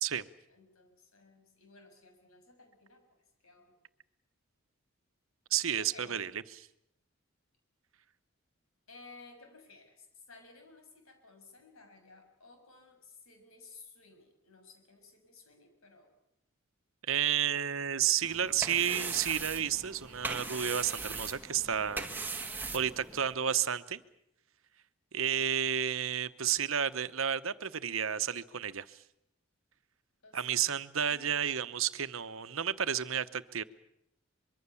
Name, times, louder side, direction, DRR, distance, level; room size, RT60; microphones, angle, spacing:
voice 1, 0.5-3.0 3.4-3.8 5.8-6.3 8.9-16.1 30.2-31.4, left 3 dB, 90° left, 5 dB, 6.6 m, -56 dB
voice 2, 5.5-6.6 17.1-22.4 22.7-24.0 25.1-29.0 30.3-33.6, right 9 dB, 75° right, 13 dB, 1.0 m, -31 dB
sound 1, 18.2-23.3, right 3 dB, 10° right, 1.7 m, -40 dB
25.0 x 23.0 x 7.1 m, 0.79 s
head